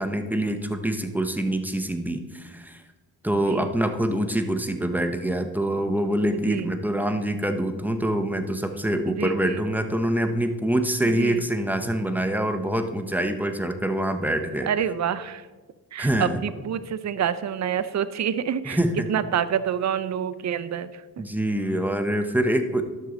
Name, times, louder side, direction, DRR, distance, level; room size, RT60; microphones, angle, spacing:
voice 1, 0.0-2.8 3.2-14.7 16.0-16.4 18.6-19.1 21.2-22.8, right 1 dB, 5° right, 7 dB, 0.9 m, -25 dB
voice 2, 9.1-9.6 11.0-11.4 14.7-15.4 15.9-18.8 19.1-21.2, right 9 dB, 45° right, 13 dB, 0.5 m, -27 dB
11.0 x 6.4 x 4.0 m, 1.3 s
cardioid pair, 70°, 39 cm